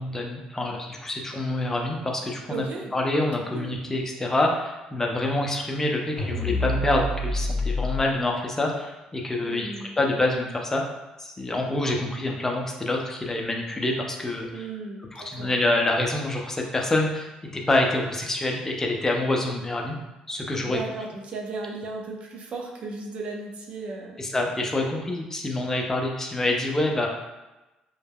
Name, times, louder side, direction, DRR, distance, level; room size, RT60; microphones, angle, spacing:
voice 1, 0.0-2.6 2.9-9.7 10.0-10.8 11.2-14.5 15.1-17.3 17.5-20.0 20.3-20.8 24.2-27.1, left 2 dB, 20° left, 1 dB, 0.4 m, -26 dB
voice 2, 2.5-2.9 3.5-3.7 9.4-9.9 14.5-15.5 20.6-24.2, right 3 dB, 55° right, 1 dB, 0.4 m, -35 dB
sound 1, 6.2-8.0, left 1 dB, 90° left, 0.5 m, -27 dB
2.2 x 2.1 x 3.3 m, 1.0 s
cardioid pair, 95°, 2 cm